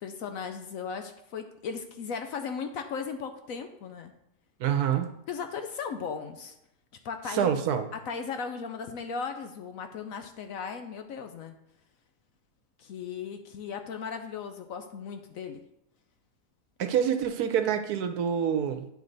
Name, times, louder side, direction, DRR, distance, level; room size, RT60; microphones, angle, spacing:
voice 1, 0.0-4.1 5.3-6.5 7.0-7.5 8.1-11.5 12.8-15.6, left 6 dB, 65° left, 7 dB, 0.9 m, -37 dB
voice 2, 4.6-5.1 7.3-7.9 16.8-18.9, right 8 dB, 70° right, 8 dB, 1.2 m, -26 dB
9.3 x 4.9 x 4.0 m, 0.79 s
omnidirectional pair, 1.7 m